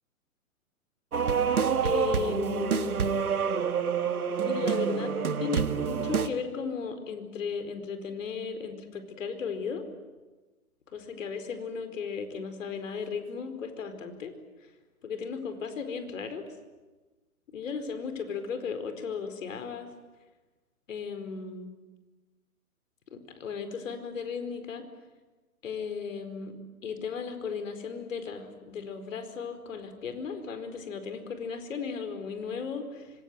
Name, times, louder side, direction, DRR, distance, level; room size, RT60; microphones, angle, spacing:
sound 1, 1.1-6.3, right 6 dB, 80° right, 2.0 m, -27 dB
voice 1, 1.8-3.0 4.4-5.1 5.4-9.8 10.9-14.3 15.0-16.4 17.5-19.9 20.9-21.7 23.1-24.8 25.6-26.5 26.8-33.1, left 5 dB, 60° left, 8 dB, 4.7 m, -35 dB
25.5 x 24.5 x 9.5 m, 1.2 s
hypercardioid pair, 135°, 43 cm